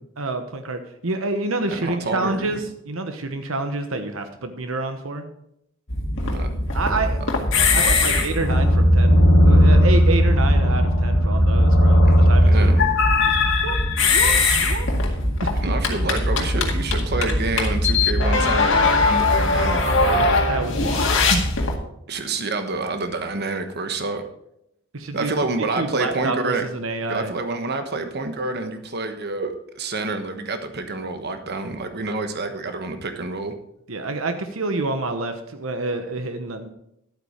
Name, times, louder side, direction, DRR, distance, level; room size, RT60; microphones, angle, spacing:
voice 1, 0.2-5.2 6.7-7.2 7.7-12.7 13.1-13.4 13.6-13.8 14.0-14.9 15.4-15.5 20.5-21.4 24.9-25.3 25.8-27.3 33.9-36.7, right 2 dB, 80° right, 7 dB, 1.1 m, -28 dB
voice 2, 1.7-2.6 6.3-6.5 7.5-8.3 12.1-12.2 12.5-13.0 15.6-20.3 22.1-24.2 25.1-26.7 27.1-33.6, right 3 dB, 55° right, 7 dB, 1.2 m, -28 dB
sound 1, 5.9-21.7, left 1 dB, 65° left, 1.9 m, -18 dB
12.0 x 8.6 x 5.0 m, 0.79 s
head